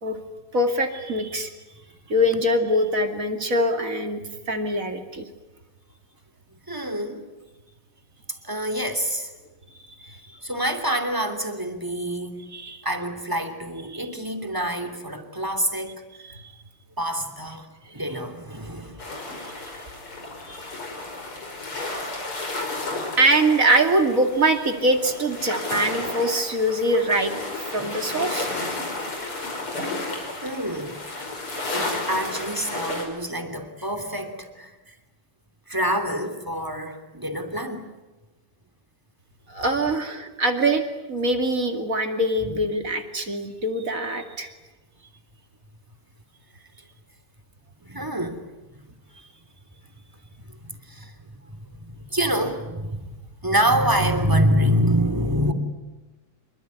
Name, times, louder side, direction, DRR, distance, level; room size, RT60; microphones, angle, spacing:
voice 1, 0.5-1.5 2.1-5.3 12.5-12.8 13.9-14.1 16.2-16.4 18.1-18.2 19.4-19.5 20.5-20.7 23.2-27.3 27.7-28.5 39.5-44.5, right 1 dB, 40° right, 6 dB, 2.8 m, -23 dB
voice 2, 6.7-7.2 8.4-9.3 10.4-12.5 12.8-16.1 17.0-17.7 17.9-19.0 30.1-31.0 31.7-34.9 35.7-37.8 39.6-39.8 42.4-42.6 47.8-48.5 50.6-51.1 51.8-53.1 53.4-55.5, equal, 10° right, 6 dB, 2.7 m, -26 dB
sound 1, 19.0-33.0, left 2 dB, 80° left, 6.3 m, -32 dB
26.5 x 23.5 x 9.6 m, 1.1 s
omnidirectional pair, 2.4 m